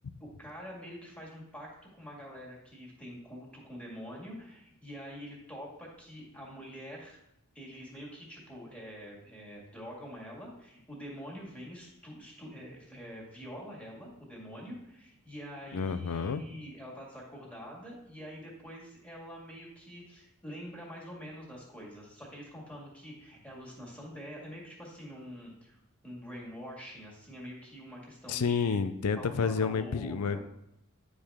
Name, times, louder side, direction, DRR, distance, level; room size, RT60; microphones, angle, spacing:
voice 1, 0.2-7.2 7.5-28.8 29.1-30.4, equal, 5° left, -3 dB, 2.0 m, -46 dB
voice 2, 15.7-16.4 28.3-30.4, left 5 dB, 85° left, 12 dB, 0.5 m, -30 dB
9.5 x 4.9 x 3.5 m, 0.78 s
head